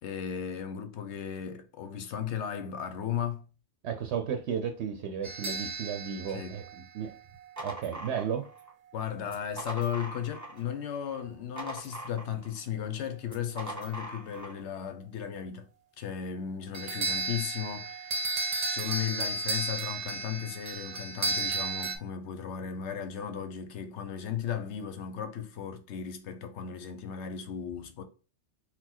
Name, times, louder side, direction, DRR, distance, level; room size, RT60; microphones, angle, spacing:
voice 1, 0.0-3.4 6.3-6.6 8.9-15.7 16.0-28.0, left 8 dB, 80° left, 0.9 m, -36 dB
voice 2, 3.8-7.1 7.6-8.5, right 7 dB, 75° right, 0.9 m, -34 dB
sound 1, 5.2-7.5 16.7-22.0, right 2 dB, 40° right, 0.8 m, -33 dB
sound 2, 7.2-8.7 9.2-10.7 11.0-12.6 13.2-14.6, right 2 dB, 15° right, 1.0 m, -42 dB
4.1 x 2.1 x 4.3 m
omnidirectional pair, 1.2 m